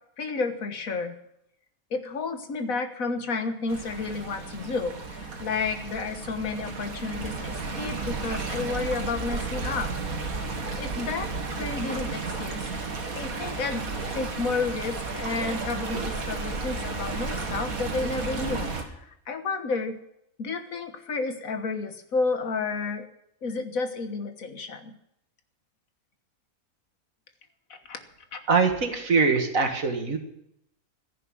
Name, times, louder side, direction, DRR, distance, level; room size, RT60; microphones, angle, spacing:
voice 1, 0.2-1.2 1.9-9.9 10.8-11.3 11.6-12.7 13.2-13.9 14.1-20.0 20.4-23.1 23.4-24.9 27.7-28.0 28.3-28.4, left 4 dB, 75° left, 8 dB, 1.8 m, -31 dB
Stream, 3.7-18.8, right 3 dB, 90° right, 2.1 m, -33 dB
voice 2, 28.5-30.2, right 4 dB, 70° right, 5 dB, 2.3 m, -23 dB
14.0 x 11.0 x 7.7 m, 0.78 s
omnidirectional pair, 1.5 m